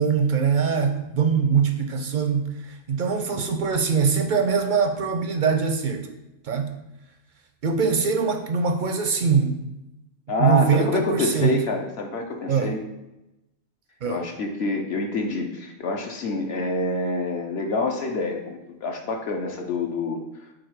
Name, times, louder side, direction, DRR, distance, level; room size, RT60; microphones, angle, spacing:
voice 1, 0.0-6.1 6.4-6.7 7.6-9.6 10.4-11.6 12.5-12.7 14.0-14.2, right 6 dB, 55° right, 6 dB, 0.5 m, -22 dB
voice 2, 10.3-12.8 14.0-20.2, left 2 dB, 60° left, 2 dB, 1.0 m, -27 dB
5.1 x 4.1 x 4.7 m, 0.95 s
omnidirectional pair, 1.2 m